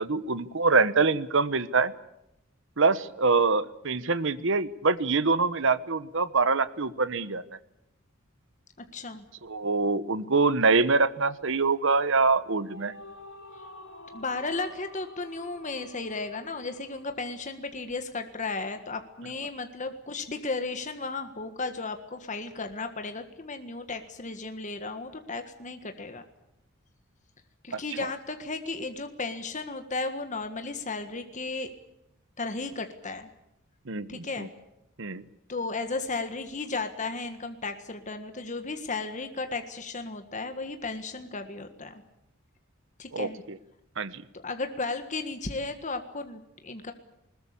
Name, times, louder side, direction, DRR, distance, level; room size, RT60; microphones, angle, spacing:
voice 1, 0.0-1.9 2.8-7.4 9.4-12.9 27.7-27.8 33.9-34.5 35.0-35.2 43.1-43.6 44.0-44.2, right 4 dB, 65° right, 14 dB, 1.2 m, -25 dB
voice 2, 8.8-9.2 14.1-26.2 27.6-31.7 32.4-33.3 34.1-34.5 35.5-42.0 43.0-43.4 44.3-46.9, left 3 dB, 35° left, 7 dB, 1.6 m, -34 dB
sound 1, 12.4-17.8, left 2 dB, 65° left, 3.7 m, -49 dB
21.0 x 21.0 x 8.5 m, 0.87 s
head